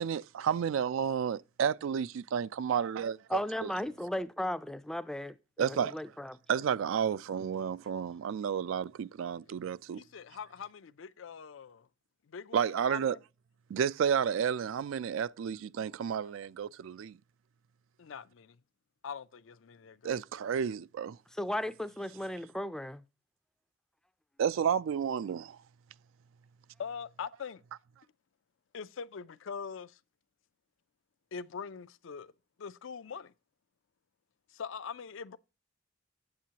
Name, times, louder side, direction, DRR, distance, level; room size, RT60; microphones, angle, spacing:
voice 1, 0.0-3.7 5.6-6.0 6.5-10.0 12.5-13.2 13.7-17.2 20.0-21.2 24.4-25.6, right 7 dB, 80° right, 0.3 m, -31 dB
voice 2, 3.3-6.4 21.3-23.0, left 1 dB, 5° left, 0.3 m, -36 dB
voice 3, 9.9-11.9 12.3-13.2 18.0-18.6 19.0-20.2 26.8-27.6 28.7-30.0 31.3-32.3 32.6-33.3 34.5-35.4, left 6 dB, 75° left, 0.4 m, -43 dB
8.2 x 7.6 x 2.8 m
head